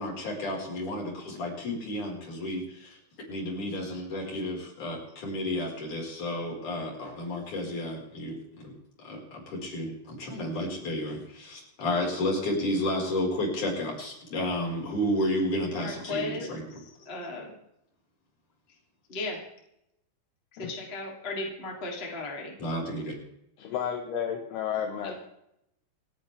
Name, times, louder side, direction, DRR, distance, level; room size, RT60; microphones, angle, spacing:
voice 1, 0.0-3.0 3.3-8.7 9.0-16.6 22.6-23.2, left 1 dB, 45° left, -2 dB, 6.3 m, -32 dB
voice 2, 15.7-17.6 19.1-19.4 20.6-22.6 25.0-25.2, left 2 dB, 15° left, -1 dB, 2.6 m, -36 dB
voice 3, 23.6-25.2, left 8 dB, 70° left, 3 dB, 3.2 m, -32 dB
28.5 x 10.0 x 3.5 m, 0.80 s
omnidirectional pair, 5.1 m